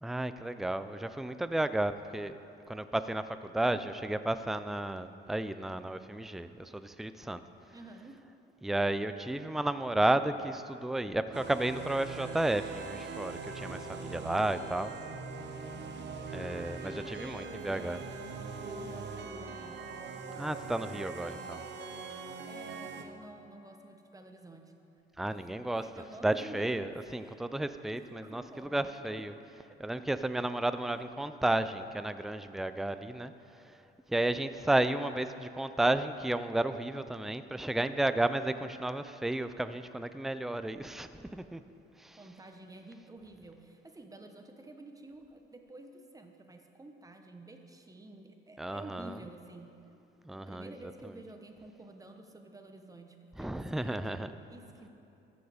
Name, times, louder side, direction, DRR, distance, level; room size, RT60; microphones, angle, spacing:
voice 1, 0.0-2.4 2.7-7.4 8.6-14.9 16.3-18.0 20.4-21.6 25.2-25.9 26.2-29.3 29.8-33.8 34.1-41.6 42.0-42.2 48.6-49.2 50.2-50.7 51.0-51.1 53.4-54.3, right 1 dB, ahead, 11 dB, 0.4 m, -32 dB
voice 2, 7.7-8.2 16.8-18.3 18.7-19.8 22.5-24.7 25.4-25.5 25.7-26.9 27.2-27.4 27.9-28.9 30.9-31.0 42.1-49.7 50.4-54.2 54.5-54.9, right 2 dB, 15° right, 4 dB, 1.0 m, -50 dB
sound 1, 11.3-23.0, right 4 dB, 60° right, 0.9 m, -42 dB
14.0 x 7.2 x 5.0 m, 2.8 s
cardioid pair, 90°, 20 cm